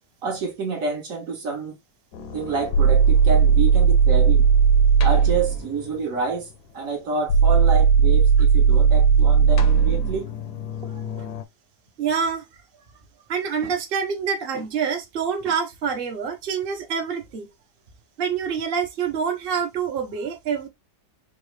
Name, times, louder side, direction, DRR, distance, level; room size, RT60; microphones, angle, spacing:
voice 1, 0.2-1.8 2.3-4.5 5.0-6.5 6.7-10.3, right 4 dB, 60° right, 1.2 m, -28 dB
sound 1, 2.2-5.6 7.3-11.4, right 6 dB, 75° left, 1.2 m, -17 dB
voice 2, 12.0-12.5 13.3-17.5 18.2-20.7, right 6 dB, 40° right, 0.9 m, -26 dB
4.7 x 2.5 x 3.2 m
omnidirectional pair, 1.8 m